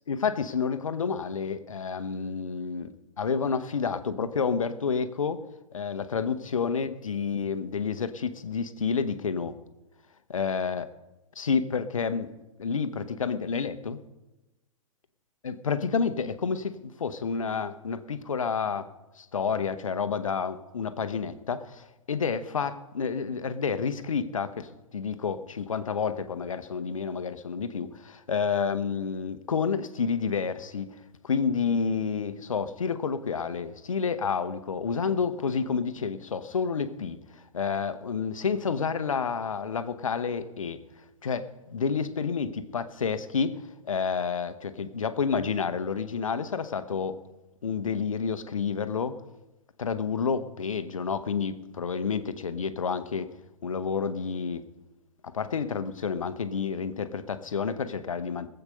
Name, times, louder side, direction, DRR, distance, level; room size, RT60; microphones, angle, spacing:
voice 1, 0.1-5.4 5.7-9.6 10.3-10.8 11.4-12.3 12.6-14.0 15.4-18.9 19.2-30.9 31.2-37.2 37.5-40.8 41.2-47.1 47.6-49.2 49.8-53.3 53.6-54.6 55.2-58.5, left 6 dB, 65° left, 12 dB, 1.0 m, -29 dB
20.0 x 8.1 x 5.3 m, 1.0 s
figure-of-eight pair, 120°, 18 cm